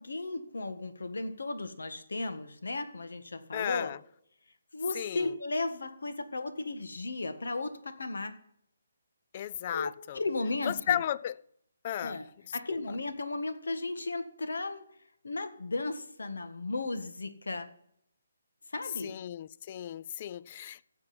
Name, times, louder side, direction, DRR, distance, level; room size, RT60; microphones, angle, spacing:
voice 1, 0.0-3.9 4.7-8.4 9.7-11.0 12.0-12.3 12.5-14.8 15.2-17.7 18.7-19.1, left 2 dB, 90° left, 1.6 m, -35 dB
voice 2, 3.5-4.0 4.9-5.3 9.3-10.2 10.7-11.4 11.8-12.2 19.0-20.8, left 11 dB, 30° left, 0.3 m, -34 dB
16.0 x 7.3 x 4.3 m
hypercardioid pair, 165°, 0 cm